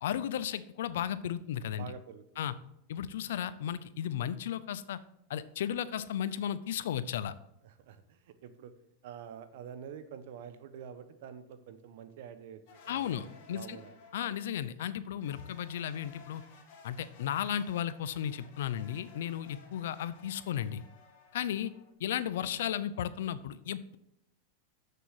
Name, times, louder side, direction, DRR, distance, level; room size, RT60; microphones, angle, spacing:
voice 1, 0.0-1.9 2.4-2.5 2.9-5.0 5.3-7.3 12.9-13.8 14.1-16.4 16.8-20.8 21.3-21.7 22.0-24.0, left 10 dB, 80° left, 15 dB, 0.6 m, -34 dB
voice 2, 1.8-2.5 7.6-8.7 9.0-14.0 21.4-21.6, right 8 dB, 65° right, 12 dB, 1.1 m, -47 dB
sound 1, 12.7-14.6 15.2-21.9, left 5 dB, 55° left, 2.4 m, -57 dB
7.2 x 6.8 x 6.5 m, 0.78 s
supercardioid pair, 130°, 0 cm